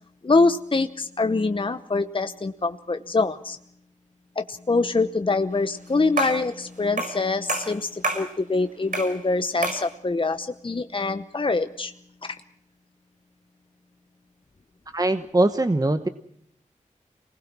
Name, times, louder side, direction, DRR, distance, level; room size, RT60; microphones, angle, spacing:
voice 1, 0.2-3.6 4.4-11.9, left 3 dB, 40° left, 9 dB, 0.9 m, -24 dB
sound 1, 6.2-6.5 7.0-7.2 7.5-8.3 8.9-9.2 9.6-9.9, right 2 dB, 85° right, 5.3 m, -27 dB
voice 2, 14.9-16.1, right 2 dB, 25° right, 9 dB, 1.1 m, -21 dB
26.5 x 20.0 x 6.1 m, 0.70 s
wide cardioid pair, 65°, 14 cm